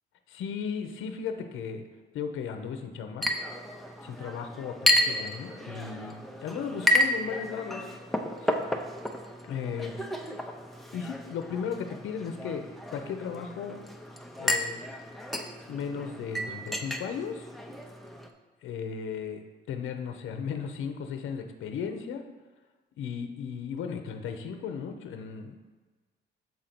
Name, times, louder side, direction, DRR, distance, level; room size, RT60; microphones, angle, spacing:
voice 1, 0.3-1.8 2.1-3.3 4.0-6.2 6.4-7.9 8.4-8.5 9.5-9.9 10.9-13.8 14.4-14.8 15.7-17.5 18.6-19.4 19.7-22.2 23.0-25.6, left 6 dB, 80° left, 6 dB, 0.7 m, -35 dB
Chink clink, 3.2-18.3, left 1 dB, ahead, 0.7 m, -32 dB
7.2 x 3.8 x 5.9 m, 1.3 s
cardioid pair, 90°, 20 cm